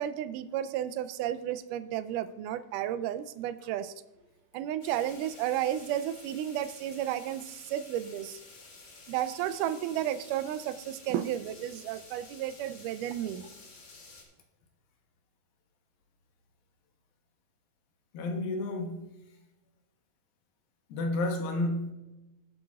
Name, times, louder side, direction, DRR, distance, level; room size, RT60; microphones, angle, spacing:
voice 1, 0.0-3.9 4.5-8.4 9.1-13.5, right 11 dB, 80° right, 1.9 m, -33 dB
sound 1, 4.8-14.2, left 3 dB, 55° left, 3.2 m, -51 dB
voice 2, 18.1-19.1 20.9-21.9, left 2 dB, 85° left, 3.0 m, -31 dB
20.5 x 7.9 x 2.4 m
omnidirectional pair, 4.1 m